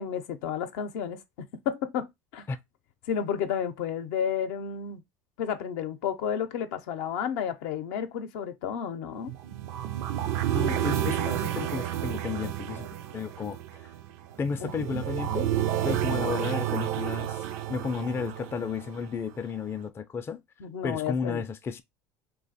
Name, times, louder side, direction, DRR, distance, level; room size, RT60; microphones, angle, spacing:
voice 1, 0.0-2.1 2.3-2.5 3.1-5.0 5.4-9.3 10.6-11.0 14.6-14.7 20.6-21.5, left 8 dB, 75° left, 0.6 m, -32 dB
sound 1, 9.3-19.4, right 12 dB, 75° right, 0.4 m, -31 dB
voice 2, 10.5-13.9 14.4-15.5 15.8-20.4 20.8-21.8, left 5 dB, 25° left, 0.4 m, -33 dB
2.5 x 2.2 x 4.0 m
supercardioid pair, 90°, 9 cm